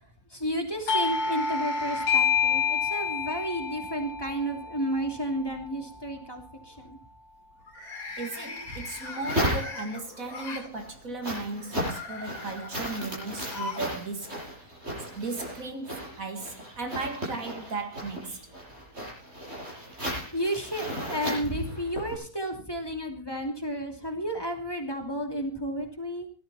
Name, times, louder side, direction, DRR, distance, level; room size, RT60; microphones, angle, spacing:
voice 1, 0.3-7.0 20.3-26.3, equal, 15° left, 3.0 m, -32 dB
Doorbell, 0.9-6.2, left 6 dB, 85° left, 2.2 m, -28 dB
sound 1, 4.1-4.7 5.1-5.5 7.6-10.7 11.5-14.0 14.2-14.3 15.4-15.5, left 3 dB, 70° left, 3.7 m, -40 dB
voice 2, 8.2-14.4 14.7-14.8 15.2-18.4, right 3 dB, 60° right, 2.4 m, -36 dB
sound 2, 8.7-10.1 10.6-22.2, equal, 45° right, 8.6 m, -35 dB
18.0 x 13.5 x 4.3 m
omnidirectional pair, 1.6 m